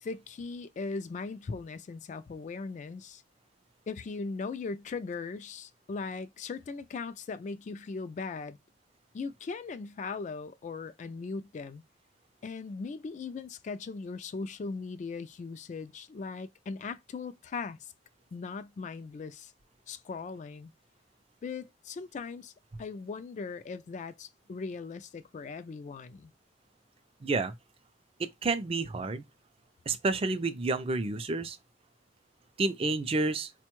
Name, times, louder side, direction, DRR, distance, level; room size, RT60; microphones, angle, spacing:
voice 1, 0.0-3.2 3.9-8.6 9.1-11.8 12.4-17.9 18.3-19.5 19.9-20.7 21.4-22.5 22.8-26.3, left 4 dB, 40° left, 0.3 m, -39 dB
voice 2, 27.2-27.5 28.2-29.2 29.9-31.6 32.6-33.5, right 3 dB, 30° right, 0.4 m, -30 dB
4.3 x 2.2 x 3.0 m
head